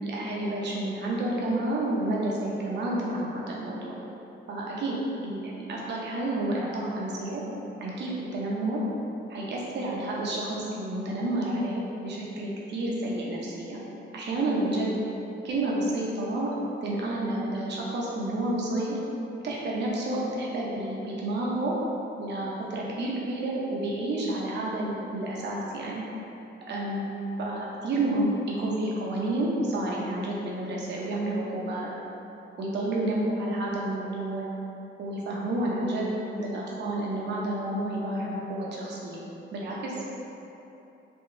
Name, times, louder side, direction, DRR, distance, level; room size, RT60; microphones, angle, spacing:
voice 1, 0.0-4.0 4.5-5.0 5.2-7.4 7.8-8.8 9.3-13.8 14.1-14.9 15.4-16.5 16.8-19.0 19.4-21.7 22.2-26.0 26.7-27.1 27.4-31.9 32.6-34.5 35.0-36.1 36.4-39.2 39.5-40.1, right 1 dB, 60° right, -4 dB, 0.8 m, -30 dB
4.4 x 2.3 x 3.2 m, 2.9 s
cardioid pair, 90°, 20 cm